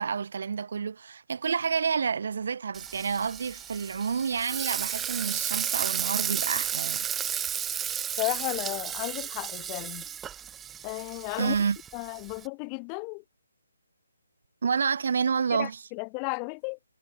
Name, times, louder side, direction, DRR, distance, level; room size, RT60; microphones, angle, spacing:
voice 1, 0.0-7.4 11.4-11.8 14.6-15.9, right 6 dB, 55° right, 1.0 m, -29 dB
Frying (food), 2.7-12.5, right 9 dB, 10° right, 1.5 m, -33 dB
voice 2, 8.2-10.0 10.8-11.5 11.9-13.2 15.6-16.8, left 40 dB or more, 20° left, 1.7 m, -34 dB
figure-of-eight pair, 145°, 0 cm